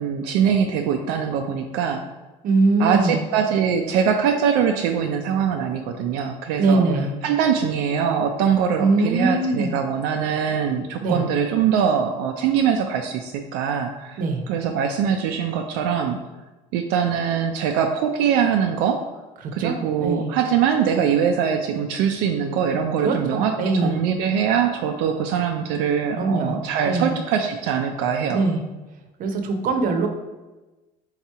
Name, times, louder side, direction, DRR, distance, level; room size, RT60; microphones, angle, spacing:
voice 1, 0.0-2.0 2.8-6.8 7.2-14.2 14.5-16.2 16.7-19.0 19.5-28.4, right 7 dB, 85° right, 3 dB, 0.4 m, -22 dB
voice 2, 2.4-3.2 6.6-7.1 8.8-9.7 11.0-11.2 14.2-14.4 19.4-20.3 23.0-24.0 26.1-27.2 28.3-28.6 29.2-30.1, right 3 dB, 55° right, 5 dB, 0.7 m, -22 dB
3.9 x 2.9 x 4.6 m, 1.1 s
cardioid pair, 105°, 17 cm